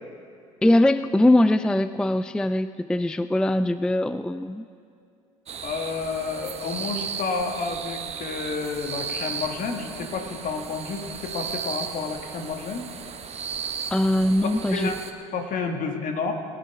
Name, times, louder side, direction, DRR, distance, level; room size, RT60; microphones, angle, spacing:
voice 1, 0.6-4.7 13.9-14.9, left 1 dB, 5° left, 13 dB, 0.3 m, -21 dB
sound 1, 5.5-15.1, right 6 dB, 40° right, 1.2 m, -35 dB
voice 2, 5.6-12.9 14.7-15.0 15.3-16.3, left 4 dB, 55° left, 4 dB, 1.8 m, -30 dB
22.0 x 10.0 x 3.5 m, 2.4 s
hypercardioid pair, 65°, 17 cm